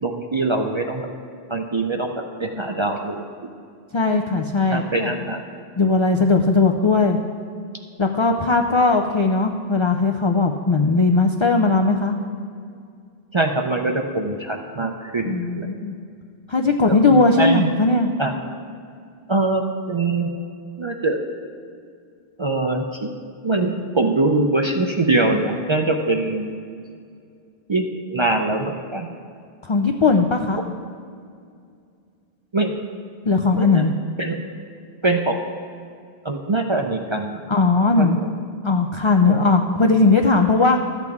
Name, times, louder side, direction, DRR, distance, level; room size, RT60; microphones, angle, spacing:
voice 1, 0.0-1.1 1.5-3.2 4.7-5.4 13.3-15.7 16.9-17.7 18.2-18.3 19.3-19.6 19.9-20.3 20.8-21.2 22.4-23.1 23.4-26.5 27.7-29.1 32.5-32.7 33.6-33.9 34.2-34.4 35.0-35.4 36.2-37.4 38.0-38.1 39.3-39.4, right 2 dB, 45° right, 3 dB, 0.4 m, -23 dB
voice 2, 3.9-5.1 5.8-7.2 8.0-12.2 15.3-16.0 16.5-18.1 29.6-30.6 33.3-33.9 37.5-38.4 38.6-40.8, left 3 dB, 55° left, 3 dB, 0.3 m, -18 dB
13.0 x 8.1 x 3.6 m, 2.3 s
omnidirectional pair, 1.1 m